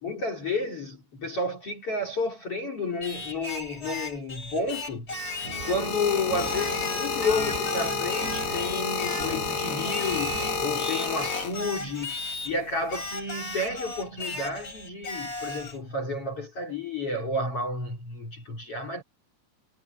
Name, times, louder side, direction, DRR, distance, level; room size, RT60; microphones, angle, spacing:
voice 1, 0.0-5.1 5.6-19.0, left 2 dB, 35° left, 4.2 m, -31 dB
Singing, 3.0-5.9 6.4-9.4 9.8-12.5 12.9-15.8, left 2 dB, 15° left, 4.4 m, -36 dB
sound 1, 5.1-12.0 12.8-13.1, left 6 dB, 55° left, 4.6 m, -30 dB
sound 2, 5.4-10.8, right 4 dB, 80° right, 6.6 m, -40 dB
omnidirectional pair, 5.1 m